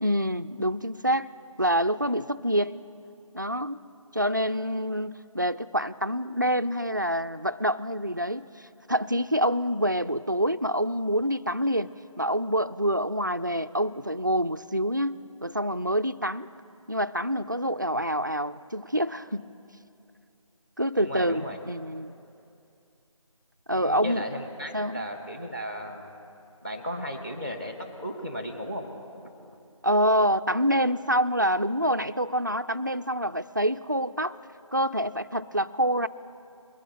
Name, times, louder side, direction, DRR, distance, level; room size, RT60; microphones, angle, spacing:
voice 1, 0.0-1.3 1.6-2.7 3.3-3.8 4.1-11.9 12.2-16.5 16.9-19.5 20.8-22.1 23.7-24.2 24.7-25.1 29.8-34.4 34.7-36.1, equal, 35° right, 10 dB, 0.4 m, -26 dB
voice 2, 20.9-21.6 23.7-26.1 26.6-28.9 29.4-29.6, equal, 20° left, 4 dB, 1.4 m, -35 dB
22.5 x 8.8 x 3.7 m, 2.6 s
figure-of-eight pair, 165°, 18 cm